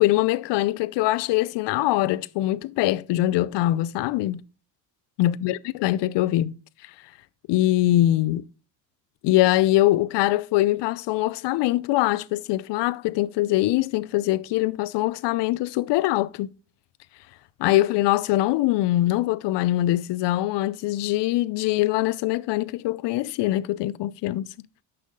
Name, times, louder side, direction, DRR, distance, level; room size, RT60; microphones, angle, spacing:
voice 1, 0.0-4.4 5.2-6.5 7.5-8.4 9.2-16.5 17.6-24.5, left 15 dB, 60° left, 0.6 m, -23 dB
6.6 x 5.5 x 5.3 m
supercardioid pair, 90°, 48 cm